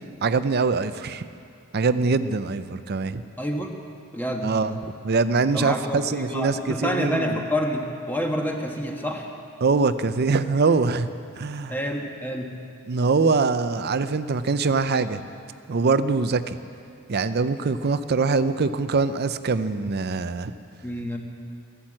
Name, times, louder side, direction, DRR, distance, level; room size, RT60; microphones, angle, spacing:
voice 1, 0.2-1.2 1.7-3.2 4.4-4.7 5.0-7.4 9.6-11.1 11.4-11.8 12.9-15.2 15.7-16.6 17.1-20.5, right 4 dB, 45° right, 12 dB, 0.5 m, -23 dB
voice 2, 3.4-3.7 4.1-4.5 5.5-9.3 11.7-12.5 20.8-21.2, equal, 10° left, 1 dB, 1.3 m, -28 dB
15.5 x 12.0 x 7.6 m, 2.4 s
head